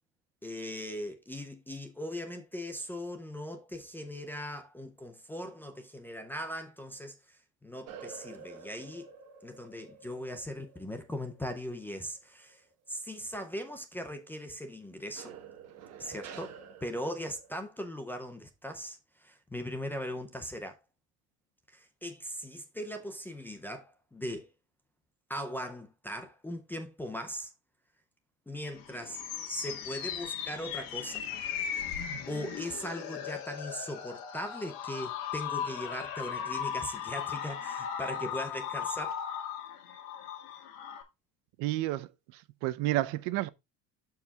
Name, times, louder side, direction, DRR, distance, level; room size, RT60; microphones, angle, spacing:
voice 1, 0.4-9.1 9.4-15.3 16.0-16.6 16.8-20.8 21.7-24.5 25.3-27.5 28.5-29.2 29.5-31.2 32.3-39.2, equal, 5° left, 0.4 m, -39 dB
sound 1, 7.9-12.7 13.1-13.5 15.2-17.7, right 6 dB, 40° right, 1.3 m, -50 dB
sound 2, 28.6-41.0, left 8 dB, 65° left, 1.8 m, -37 dB
voice 2, 41.6-42.1 42.6-43.5, right 16 dB, 65° right, 0.7 m, -30 dB
12.5 x 4.7 x 2.3 m
cardioid pair, 180°, 37 cm